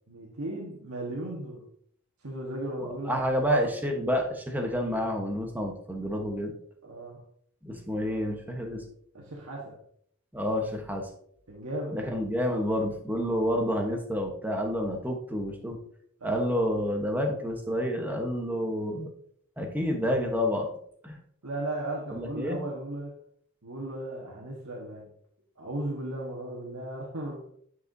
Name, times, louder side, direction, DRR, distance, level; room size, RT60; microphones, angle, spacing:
voice 1, 0.1-1.6 2.2-3.7 6.8-7.2 9.1-9.8 11.5-12.0 16.2-16.5 21.4-23.2 23.6-25.1 25.6-27.4, right 1 dB, 90° right, -3 dB, 1.4 m, -36 dB
voice 2, 3.1-6.5 7.6-8.8 10.3-11.1 11.9-15.8 16.2-19.1 19.6-20.7 21.0-21.2 22.1-22.6, equal, 10° right, 2 dB, 1.0 m, -29 dB
9.7 x 4.8 x 2.7 m, 0.65 s
head